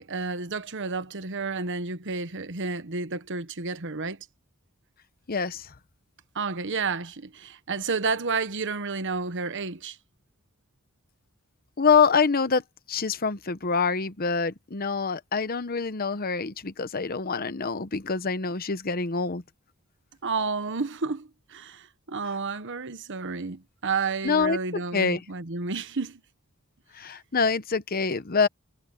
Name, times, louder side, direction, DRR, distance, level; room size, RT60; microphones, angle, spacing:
voice 1, 0.0-4.2 6.3-10.0 20.2-26.2, right 4 dB, 60° right, 1.2 m, -31 dB
voice 2, 5.3-5.7 11.8-12.6 12.9-19.4 24.2-25.2 26.9-28.5, left 5 dB, 45° left, 0.9 m, -25 dB
head